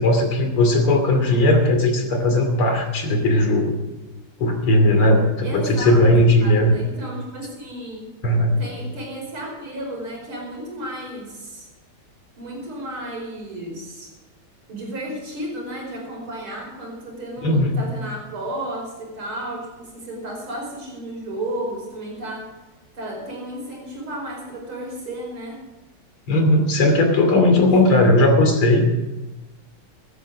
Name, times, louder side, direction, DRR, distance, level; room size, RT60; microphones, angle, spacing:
voice 1, 0.0-3.8 4.4-6.7 8.2-8.6 17.4-17.8 26.3-28.9, left 1 dB, 85° left, 5 dB, 3.6 m, -17 dB
voice 2, 5.4-6.1 6.4-8.0 8.6-11.7 12.4-14.1 14.7-22.5 22.9-25.7 27.5-28.4, right 1 dB, 80° right, 0 dB, 6.0 m, -33 dB
16.5 x 13.0 x 5.0 m, 1.1 s
omnidirectional pair, 2.3 m